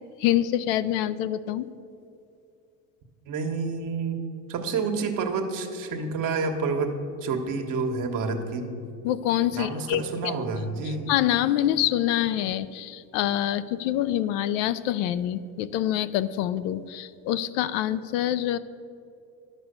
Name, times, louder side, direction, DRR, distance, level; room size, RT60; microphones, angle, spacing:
voice 1, 0.2-1.7 9.0-10.4 11.1-18.6, left 12 dB, 70° left, 14 dB, 0.5 m, -26 dB
voice 2, 3.3-4.2 4.5-6.9 7.2-8.6 9.5-11.1, right 4 dB, 50° right, 5 dB, 1.4 m, -29 dB
11.0 x 6.2 x 6.7 m, 2.6 s
supercardioid pair, 100°, 41 cm